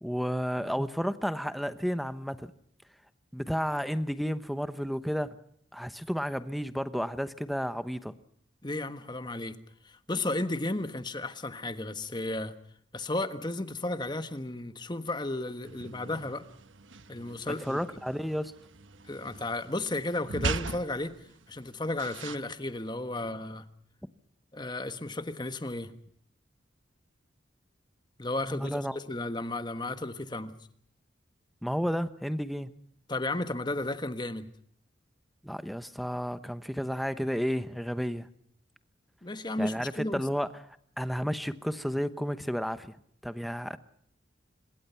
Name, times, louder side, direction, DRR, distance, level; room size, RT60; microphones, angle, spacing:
voice 1, 0.0-2.5 3.3-5.4 5.7-8.1 17.6-18.5 28.5-29.0 31.6-32.7 35.4-38.3 39.6-40.5 41.0-43.0 43.2-43.8, equal, ahead, 12 dB, 0.9 m, -32 dB
voice 2, 8.6-9.6 9.8-12.5 12.9-16.4 17.1-17.8 19.0-21.1 21.5-23.7 24.5-25.9 28.2-30.5 33.1-34.5 39.2-40.2, left 2 dB, 25° left, 10 dB, 1.4 m, -33 dB
sound 1, 15.6-22.4, right 4 dB, 85° right, 1.1 m, -40 dB
25.5 x 21.5 x 5.7 m, 0.66 s
head